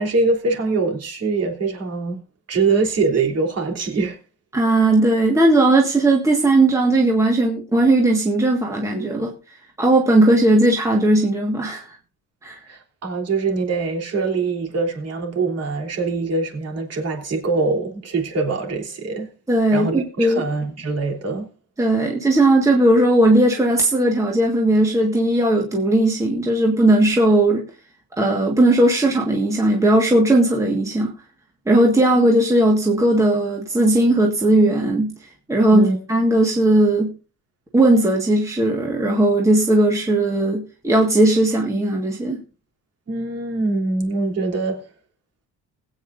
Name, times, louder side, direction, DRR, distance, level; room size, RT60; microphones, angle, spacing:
voice 1, 0.0-2.2 2.5-4.2 12.7-19.3 19.7-21.5 35.7-36.0 43.1-44.9, right 3 dB, 40° right, 3.4 m, -23 dB
voice 2, 4.5-9.3 9.8-12.0 12.4-12.6 19.5-20.4 21.8-27.7 28.2-31.1 31.7-35.1 35.5-37.1 37.7-42.4, right 1 dB, 10° right, 1.6 m, -17 dB
20.5 x 8.8 x 2.6 m
cardioid pair, 165°, 37 cm